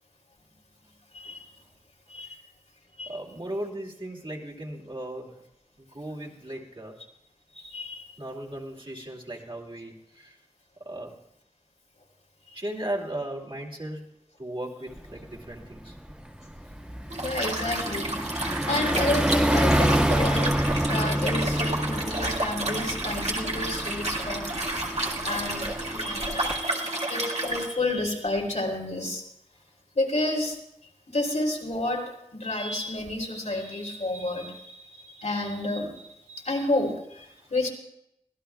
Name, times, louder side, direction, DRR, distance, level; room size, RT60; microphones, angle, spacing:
voice 1, 3.1-5.5 5.8-7.0 8.2-10.4 10.8-11.2 12.5-14.1 14.4-16.0 24.8-25.0 37.4-37.5, right 1 dB, 45° right, -3 dB, 2.6 m, -37 dB
voice 2, 7.5-8.1 12.5-12.6 17.1-18.1 18.5-24.6 25.2-29.2 29.9-30.6 31.1-37.7, left 2 dB, 80° left, -2 dB, 3.5 m, -30 dB
Car passing by, 15.0-15.2 15.6-26.6, equal, 10° right, 1.8 m, -28 dB
Liquid, 17.1-27.7, right 2 dB, 60° right, 2.0 m, -31 dB
24.0 x 17.0 x 2.4 m, 0.81 s
wide cardioid pair, 60°, 12 cm